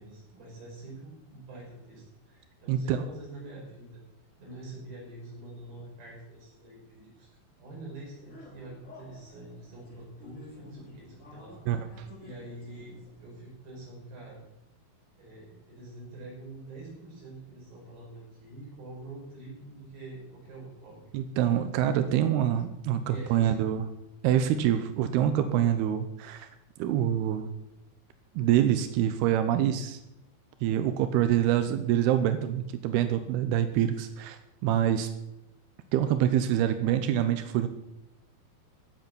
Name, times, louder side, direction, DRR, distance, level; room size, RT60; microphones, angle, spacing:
voice 1, 0.0-4.0 4.4-7.3 7.6-11.9 12.2-14.4 15.1-21.0 23.1-23.7, right 2 dB, 65° right, -3 dB, 7.7 m, -46 dB
voice 2, 2.7-3.0 11.7-12.1 21.1-23.9 24.2-26.5 26.8-27.5 28.4-30.0 30.6-35.1 35.9-37.7, right 10 dB, 90° right, 9 dB, 2.8 m, -26 dB
sound 1, 8.2-13.3, left 3 dB, 25° left, 2.2 m, -51 dB
15.0 x 8.1 x 7.1 m, 0.87 s
omnidirectional pair, 4.5 m